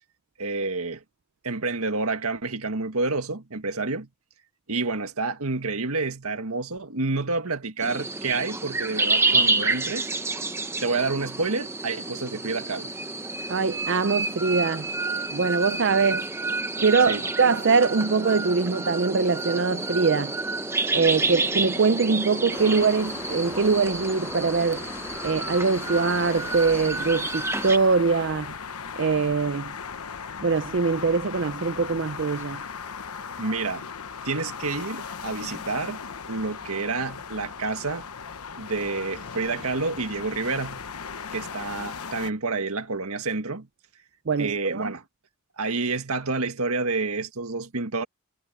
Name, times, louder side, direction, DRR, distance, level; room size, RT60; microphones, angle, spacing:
voice 1, 0.4-1.0 1.4-4.1 4.7-10.1 10.8-12.9 17.1-17.2 33.4-33.9 34.2-36.0 36.3-38.1 38.6-40.8 41.3-43.7 44.4-45.0 45.6-48.0, right 3 dB, 80° right, 1.8 m, -29 dB
sound 1, 7.8-27.8, right 3 dB, 10° right, 0.8 m, -29 dB
voice 2, 13.5-14.9 15.3-16.2 16.8-20.3 20.9-24.9 25.2-28.5 29.0-29.7 30.4-32.6 44.3-44.9, right 4 dB, 55° right, 0.5 m, -23 dB
sound 2, 22.5-42.3, left 6 dB, 85° left, 1.0 m, -38 dB
head